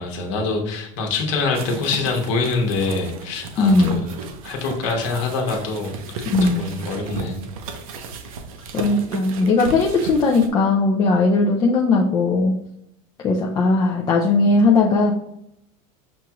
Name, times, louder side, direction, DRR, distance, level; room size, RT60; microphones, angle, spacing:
voice 1, 0.0-4.1 4.4-5.9 6.4-7.4, left 3 dB, 60° left, 2 dB, 1.1 m, -25 dB
sound 1, 1.5-10.5, right 4 dB, 85° right, 0.7 m, -34 dB
voice 2, 3.6-4.1 6.3-6.6 8.7-12.5 13.2-15.1, left 3 dB, 20° left, -1 dB, 0.3 m, -18 dB
6.1 x 2.4 x 2.9 m, 0.77 s
supercardioid pair, 155°, 18 cm